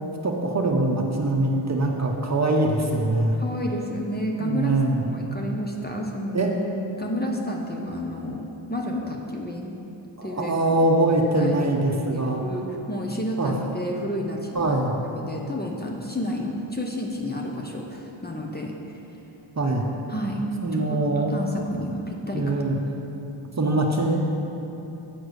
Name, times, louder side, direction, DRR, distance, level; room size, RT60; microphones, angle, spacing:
voice 1, 0.2-3.4 4.4-5.0 6.3-6.5 10.2-12.4 13.4-13.5 14.5-14.9 19.6-19.9 20.6-21.3 22.3-22.8 23.6-24.2, right 2 dB, 35° right, 1 dB, 1.0 m, -23 dB
voice 2, 3.4-4.7 5.1-6.4 7.0-9.7 10.2-10.8 11.4-11.6 12.1-14.7 15.1-19.0 20.1-20.4 20.7-22.6, equal, 20° left, 0 dB, 1.0 m, -31 dB
8.1 x 4.7 x 6.5 m, 2.9 s
cardioid pair, 65°, 49 cm